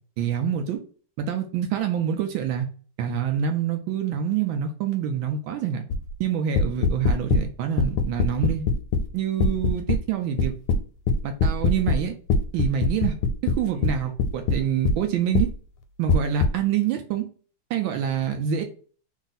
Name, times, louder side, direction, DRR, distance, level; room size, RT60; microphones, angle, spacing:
voice 1, 0.2-0.8 1.2-2.7 3.0-5.8 6.2-8.6 9.1-10.5 11.2-12.1 12.5-13.2 13.4-15.5 16.0-17.3 17.7-18.6, right 8 dB, 75° right, 5 dB, 1.2 m, -26 dB
sound 1, 5.9-6.1 6.6-7.4 7.8-9.1 9.4-10.0 10.4-12.0 12.3-15.0 15.3-15.5 16.1-16.5, left 3 dB, 85° left, 1.4 m, -22 dB
3.5 x 2.4 x 3.9 m, 0.40 s
omnidirectional pair, 2.4 m